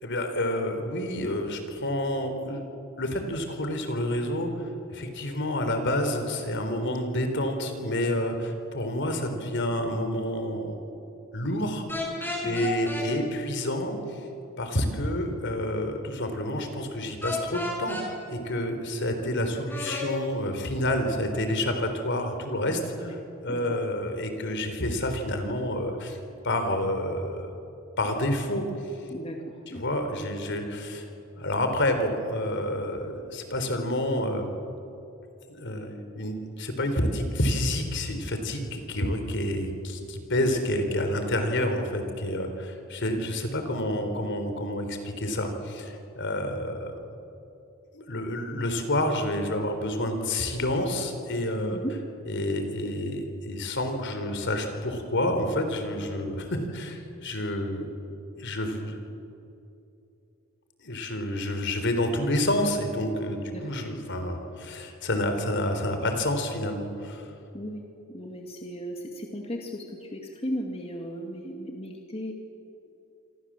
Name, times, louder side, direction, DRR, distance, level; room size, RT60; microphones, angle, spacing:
voice 1, 0.0-2.6 3.0-10.8 11.3-11.8 12.4-14.3 14.6-23.2 23.4-26.2 26.4-27.5 28.0-29.0 29.7-31.1 31.3-34.5 35.5-46.9 47.9-51.8 52.3-58.1 58.4-59.1 60.8-67.3, left 1 dB, 55° left, 6 dB, 3.8 m, -29 dB
sound 1, 11.9-13.1 17.2-18.1 19.7-20.1, left 2 dB, 10° left, 6.1 m, -32 dB
voice 2, 29.1-29.8 51.7-52.0 63.5-63.8 67.5-72.3, equal, 30° left, 2 dB, 2.2 m, -36 dB
27.0 x 25.5 x 7.6 m, 2.8 s
head